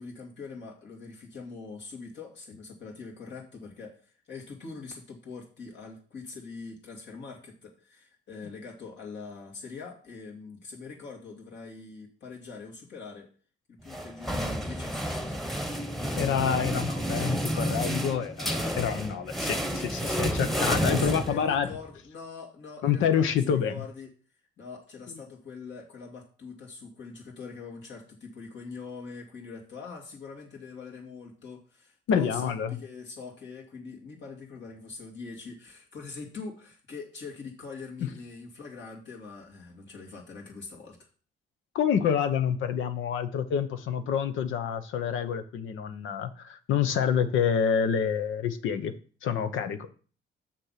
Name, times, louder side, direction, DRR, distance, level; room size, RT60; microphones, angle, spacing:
voice 1, 0.0-13.3 13.7-15.6 18.4-18.9 20.0-20.7 21.0-24.1 24.6-41.1, left 4 dB, 65° left, 0 dB, 2.7 m, -43 dB
sound 1, 13.9-21.8, equal, ahead, 1.1 m, -30 dB
voice 2, 16.2-21.7 22.8-23.7 32.1-32.8 41.7-48.9 49.2-49.9, left 7 dB, 85° left, 9 dB, 0.9 m, -27 dB
6.5 x 6.1 x 5.8 m, 0.41 s
cardioid pair, 90°, 20 cm